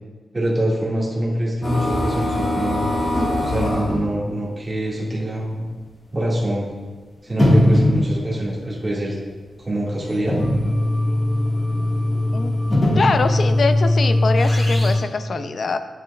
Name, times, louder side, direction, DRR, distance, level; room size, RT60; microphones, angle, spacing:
voice 1, 0.3-2.8 3.4-5.7 6.1-6.7 7.2-9.2 9.6-10.4, right 1 dB, 20° right, -6 dB, 2.0 m, -24 dB
sound 1, 1.6-4.0 4.9-5.0 5.4-5.5 6.4-6.5 7.3-8.4 9.9-14.9, left 1 dB, 30° left, 2.1 m, -20 dB
voice 2, 12.9-15.8, left 4 dB, 45° left, 9 dB, 0.5 m, -23 dB
10.5 x 9.2 x 2.4 m, 1.4 s
wide cardioid pair, 175°, 0 cm